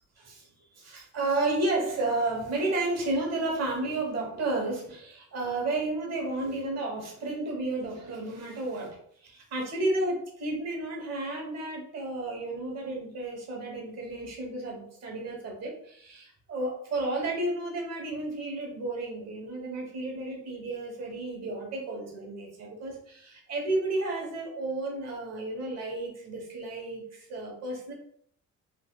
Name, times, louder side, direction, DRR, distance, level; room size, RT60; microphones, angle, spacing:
voice 1, 0.2-0.5 0.7-27.9, right 2 dB, 60° right, -1 dB, 1.2 m, -32 dB
3.3 x 2.6 x 2.3 m, 0.63 s
cardioid pair, 90°, 30 cm